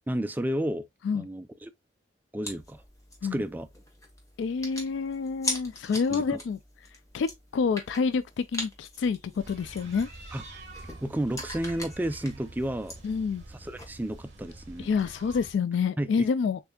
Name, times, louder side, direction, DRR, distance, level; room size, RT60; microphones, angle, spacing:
voice 1, 0.1-0.8 1.1-1.7 2.3-2.8 3.3-3.7 6.1-6.4 10.3-10.4 11.0-12.9 13.6-14.9 16.0-16.3, right 1 dB, 10° right, 0.3 m, -31 dB
sound 1, 2.4-14.2, left 2 dB, 20° left, 1.2 m, -41 dB
voice 2, 4.4-6.6 7.1-10.1 13.0-13.4 14.8-16.6, left 5 dB, 80° left, 0.3 m, -28 dB
sound 2, 9.4-15.6, right 2 dB, 40° right, 1.6 m, -46 dB
6.7 x 2.7 x 2.3 m
head